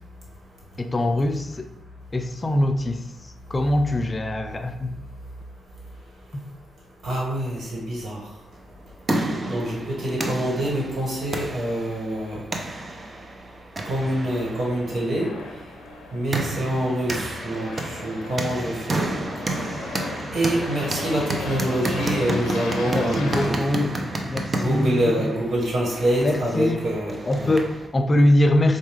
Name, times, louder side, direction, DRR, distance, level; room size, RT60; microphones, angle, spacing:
voice 1, 0.8-1.7 2.1-4.9 22.9-25.3 26.2-26.8 27.3-28.8, left 1 dB, 35° left, 7 dB, 0.3 m, -23 dB
voice 2, 7.0-8.2 9.5-12.4 13.8-15.3 16.1-19.1 20.3-23.8 24.5-27.5, right 1 dB, 65° right, -4 dB, 1.5 m, -26 dB
sound 1, 8.6-27.9, right 2 dB, 40° right, 0.6 m, -31 dB
Aircraft, 14.3-23.5, left 3 dB, 90° left, 0.6 m, -36 dB
4.5 x 2.3 x 3.1 m, 0.93 s
supercardioid pair, 50°, 0 cm